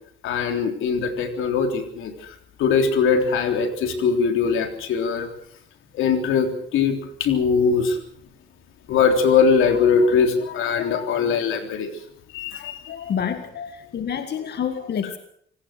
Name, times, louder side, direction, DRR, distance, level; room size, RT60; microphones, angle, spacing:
voice 1, 0.2-2.1 2.6-5.3 5.9-8.0 8.9-11.9 12.3-13.1 13.6-13.7, left 5 dB, 85° left, 6 dB, 3.6 m, -21 dB
voice 2, 13.1-15.2, left 8 dB, 55° left, 8 dB, 1.9 m, -28 dB
26.0 x 18.0 x 6.5 m, 0.65 s
cardioid pair, 90°, 20 cm